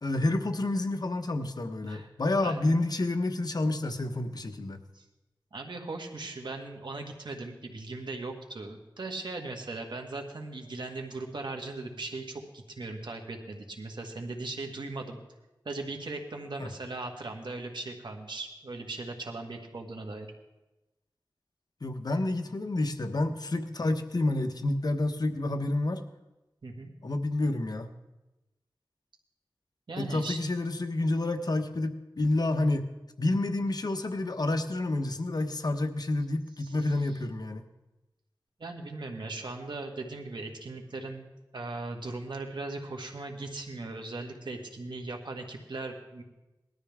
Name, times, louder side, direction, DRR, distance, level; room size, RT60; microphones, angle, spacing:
voice 1, 0.0-4.8 16.6-16.7 21.8-26.0 27.0-27.9 30.0-32.9 33.2-37.6, left 2 dB, 60° left, 7 dB, 1.1 m, -29 dB
voice 2, 2.4-2.8 4.9-5.0 5.5-15.2 15.7-20.3 26.6-26.9 29.9-30.4 36.6-37.2 38.6-41.3 41.5-46.2, right 3 dB, 80° right, 2 dB, 1.9 m, -38 dB
19.5 x 13.0 x 3.6 m, 1.0 s
wide cardioid pair, 65°, 8 cm